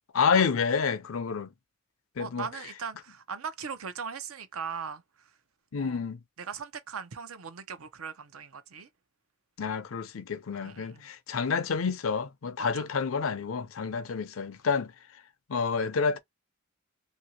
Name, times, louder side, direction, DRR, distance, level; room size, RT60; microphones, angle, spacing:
voice 1, 0.1-1.5 2.2-2.5 5.7-6.2 9.6-14.9 15.5-16.2, left 5 dB, 70° left, 0.5 m, -29 dB
voice 2, 2.2-5.3 5.7-6.1 6.4-8.9 10.6-11.1 12.6-12.7, right 6 dB, 85° right, 0.7 m, -39 dB
2.8 x 2.7 x 2.8 m
head